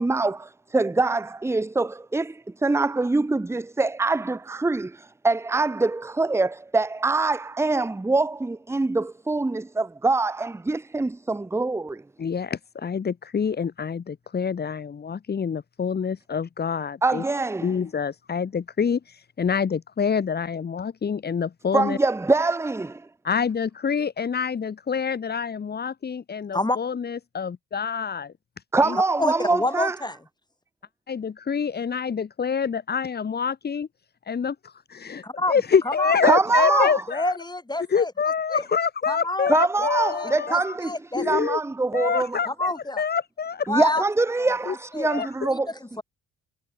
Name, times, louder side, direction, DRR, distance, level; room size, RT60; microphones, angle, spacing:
voice 1, 0.0-12.0 17.0-17.8 21.7-23.1 28.7-30.0 36.2-37.0 39.5-42.4 43.7-45.7, right 3 dB, 10° right, 0.5 m, -24 dB
voice 2, 12.2-17.2 17.6-22.0 23.2-28.3 28.8-29.0 31.1-33.9 34.3-35.2 35.5-37.3 37.9-40.7 41.2-41.6 41.9-43.7 44.7-44.8 45.0-45.5, left 6 dB, 25° left, 0.8 m, -26 dB
voice 3, 29.2-30.2 35.2-36.2 36.6-38.1 38.5-38.7 39.1-39.5 39.8-41.3 42.5-43.0 43.7-44.0 44.4-44.5 44.9-45.1 45.4-46.0, left 2 dB, 10° left, 4.7 m, -28 dB
cardioid pair, 120°, 36 cm